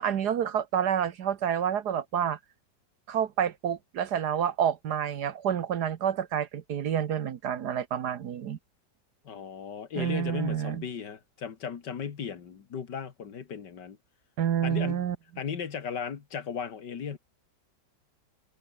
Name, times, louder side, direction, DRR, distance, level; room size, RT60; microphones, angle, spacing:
voice 1, 0.0-2.4 3.1-8.6 10.0-10.8 14.4-15.2, right 9 dB, 65° right, 1.6 m, -28 dB
voice 2, 9.2-14.0 14.6-15.0 15.4-17.2, left 7 dB, 70° left, 2.3 m, -36 dB
omnidirectional pair, 2.0 m